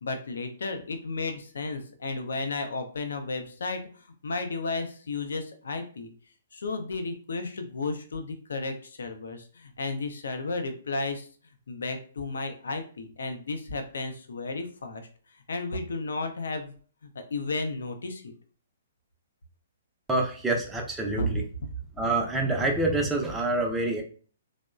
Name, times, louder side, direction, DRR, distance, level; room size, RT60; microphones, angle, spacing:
voice 1, 0.0-3.8 4.2-6.1 6.5-11.3 11.7-15.1 15.5-16.7 17.3-18.3 21.2-21.3 21.6-21.7, left 3 dB, 65° left, 6 dB, 0.4 m, -33 dB
voice 2, 20.1-21.4 21.9-24.0, right 2 dB, 10° right, 1 dB, 0.5 m, -27 dB
2.8 x 2.0 x 2.3 m, 0.42 s
figure-of-eight pair, 120°, 0 cm